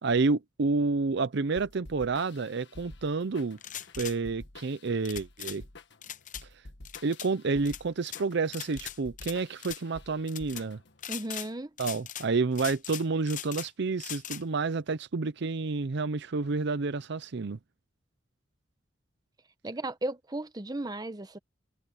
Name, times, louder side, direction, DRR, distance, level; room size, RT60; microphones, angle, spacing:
voice 1, 0.0-3.6 4.0-5.6 7.0-10.8 11.8-17.6, right 4 dB, 65° right, 0.6 m, -29 dB
sound 1, 1.6-11.1, left 2 dB, 65° left, 1.6 m, -50 dB
sound 2, 3.6-4.2 5.0-5.6 6.0-6.4 6.8-7.3 7.6-8.2 8.5-9.3 9.6-9.8 10.3-10.6 11.0-11.5 11.8-12.3 12.5-13.7 14.0-14.4, left 11 dB, 40° left, 0.7 m, -40 dB
voice 2, 11.1-11.7 19.6-21.4, right 2 dB, 20° right, 0.9 m, -35 dB
open air
head